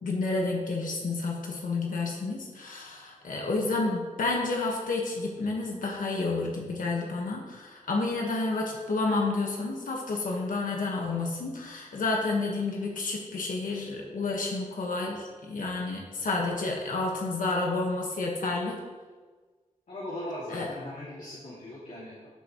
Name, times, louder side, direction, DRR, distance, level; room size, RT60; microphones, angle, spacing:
voice 1, 0.0-18.8 20.5-20.7, left 3 dB, 85° left, -1 dB, 1.6 m, -30 dB
voice 2, 19.9-22.3, left 1 dB, 65° left, -8 dB, 2.6 m, -39 dB
13.5 x 7.9 x 3.2 m, 1.4 s
wide cardioid pair, 125°, 13 cm